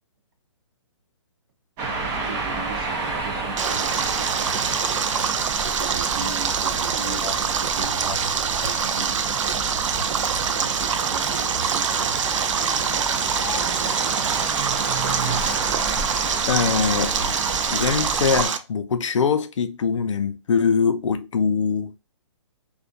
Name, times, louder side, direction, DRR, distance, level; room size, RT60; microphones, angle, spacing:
sound 1, 1.8-18.5, right 3 dB, 15° right, 0.4 m, -31 dB
voice 1, 2.1-4.0 5.8-9.4 10.4-14.2, right 4 dB, 50° right, 0.7 m, -40 dB
Stream, 3.6-18.6, right 7 dB, 80° right, 0.4 m, -24 dB
sound 2, 7.9-17.5, left 3 dB, 40° left, 0.6 m, -40 dB
voice 2, 16.5-17.1 17.7-22.0, left 6 dB, 85° left, 0.4 m, -23 dB
2.3 x 2.2 x 2.6 m
hypercardioid pair, 155°, 16 cm